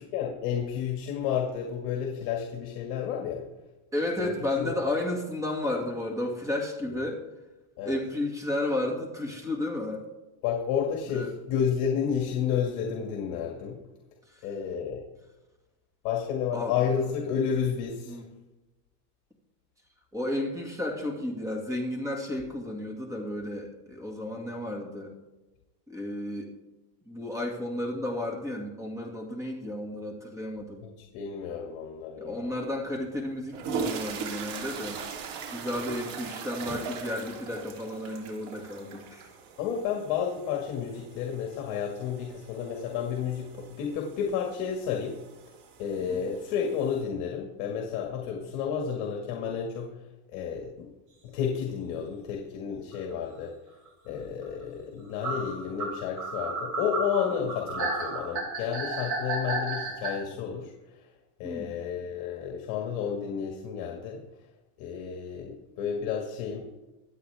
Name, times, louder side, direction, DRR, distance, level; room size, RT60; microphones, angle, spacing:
voice 1, 0.0-3.5 4.2-4.3 4.6-4.8 6.9-7.0 7.8-8.0 10.4-13.8 14.4-15.0 16.0-18.2 31.1-32.5 39.6-45.2 45.8-49.9 50.3-50.9 51.2-53.5 54.0-60.7 61.4-64.2 64.8-66.6, left 7 dB, 65° left, 0 dB, 2.2 m, -31 dB
voice 2, 3.9-7.2 7.8-10.0 11.1-11.3 14.3-14.5 16.5-16.7 18.1-18.3 20.1-25.1 25.9-26.5 27.0-30.8 32.2-35.0 35.5-39.3 46.1-46.2 61.4-61.8, left 1 dB, 5° right, 0 dB, 2.2 m, -32 dB
sound 1, 32.7-32.8 33.4-47.0, right 6 dB, 60° right, 3.2 m, -40 dB
sound 2, 52.9-53.0 54.4-54.5 55.2-60.1, right 3 dB, 35° right, 3.8 m, -32 dB
24.0 x 8.5 x 3.5 m, 1.1 s
cardioid pair, 175°, 50 cm